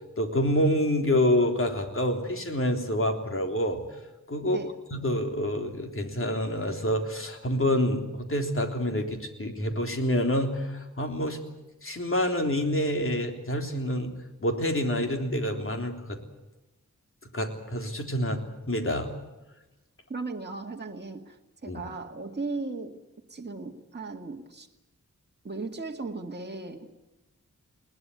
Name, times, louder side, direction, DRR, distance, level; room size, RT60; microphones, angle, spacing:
voice 1, 0.2-3.8 4.3-4.6 4.9-11.4 11.8-14.1 14.4-16.2 17.3-18.4 18.7-19.1 21.7-21.8, left 1 dB, 40° left, 3.5 m, -27 dB
voice 2, 20.1-21.4 21.6-23.0 23.3-24.7 25.4-26.9, right 3 dB, 35° right, 2.1 m, -36 dB
21.0 x 19.0 x 9.6 m
wide cardioid pair, 100°, 31 cm